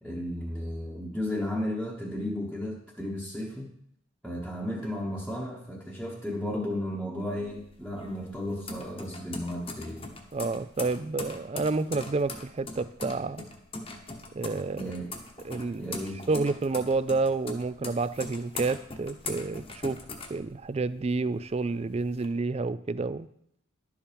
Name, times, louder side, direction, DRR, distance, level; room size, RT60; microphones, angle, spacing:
voice 1, 0.0-3.7 4.2-10.1 14.7-15.2 15.7-16.3, left 1 dB, ahead, -5 dB, 1.1 m, -34 dB
sound 1, 7.2-21.0 21.4-22.3, left 3 dB, 25° left, 1.1 m, -41 dB
voice 2, 10.3-13.4 14.3-14.9 15.4-16.0 16.3-20.0 20.3-23.3, right 3 dB, 30° right, 16 dB, 0.3 m, -29 dB
11.5 x 7.1 x 5.2 m, 0.72 s
head